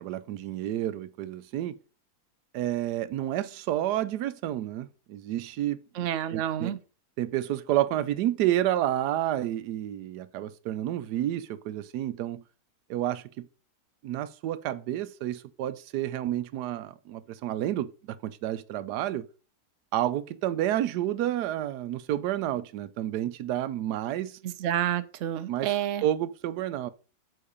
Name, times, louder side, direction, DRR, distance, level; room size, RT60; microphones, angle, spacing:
voice 1, 0.0-1.8 2.5-6.8 7.2-12.4 12.9-13.5 14.0-19.3 19.9-24.4 25.5-25.7 26.0-26.9, right 13 dB, 90° right, 1.2 m, -30 dB
voice 2, 5.9-6.8 24.4-26.0, right 11 dB, 60° right, 0.9 m, -29 dB
8.4 x 4.0 x 5.4 m
omnidirectional pair, 1.7 m